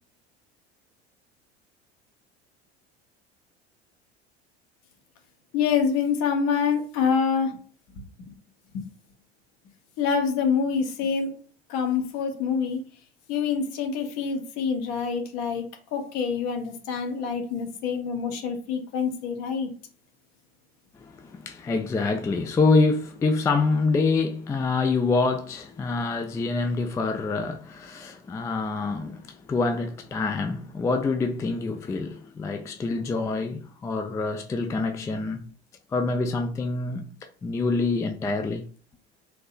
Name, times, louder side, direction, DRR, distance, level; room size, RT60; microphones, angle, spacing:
voice 1, 5.5-7.6 7.9-8.0 8.7-8.8 10.0-11.3 11.7-12.8 13.3-15.6 15.9-19.7, left 6 dB, 55° left, 1.1 m, -26 dB
voice 2, 20.9-35.4 35.9-37.1 37.4-38.6, left 3 dB, 10° left, 0.3 m, -26 dB
3.8 x 2.8 x 2.4 m
figure-of-eight pair, 70°, 33 cm